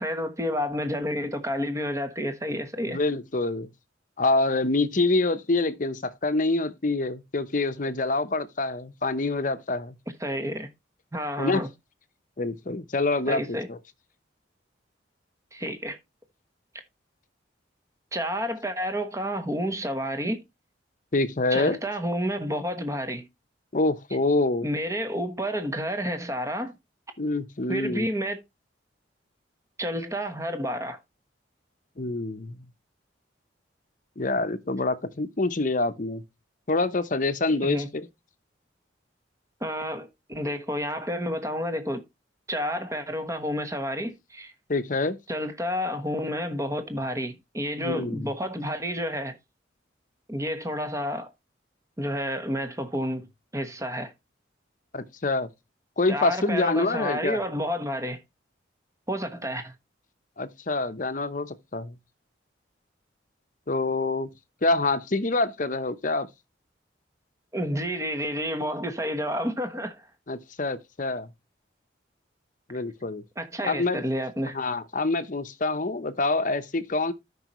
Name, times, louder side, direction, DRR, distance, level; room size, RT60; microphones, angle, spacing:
voice 1, 0.0-3.0 10.2-10.7 11.1-11.7 13.3-13.7 15.5-16.0 18.1-20.4 21.5-23.3 24.6-26.7 27.7-28.4 29.8-31.0 37.6-37.9 39.6-42.0 42.5-44.5 45.3-49.3 50.3-51.3 52.0-53.3 53.5-54.1 56.1-58.2 59.1-59.7 67.5-70.1 73.4-74.6, equal, 15° right, 1.2 m, -30 dB
voice 2, 2.9-3.7 4.2-9.9 11.4-11.6 12.4-13.8 21.1-21.8 23.7-24.7 27.2-28.1 32.0-32.7 34.2-36.2 36.7-38.1 44.7-45.2 47.8-48.3 54.9-55.5 56.0-57.4 60.4-62.0 63.7-64.3 64.6-66.3 70.3-71.3 72.7-73.2 73.7-74.0 74.5-77.1, left 2 dB, 45° left, 0.8 m, -26 dB
13.0 x 5.5 x 3.0 m
head